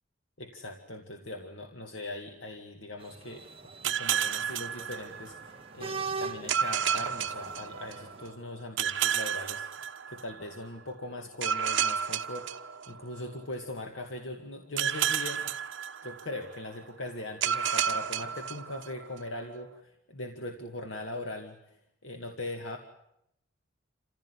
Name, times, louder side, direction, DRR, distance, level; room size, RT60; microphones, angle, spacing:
voice 1, 0.4-12.6 12.9-15.5 16.0-22.8, left 1 dB, 80° left, 4 dB, 2.1 m, -40 dB
sound 1, 3.0-8.3, right 4 dB, 30° right, 1.2 m, -41 dB
sound 2, 3.8-5.6 6.5-8.2 8.8-10.5 11.4-13.4 14.8-16.5 17.4-19.2, right 8 dB, 75° right, 1.2 m, -31 dB
27.5 x 16.0 x 9.9 m, 0.80 s
head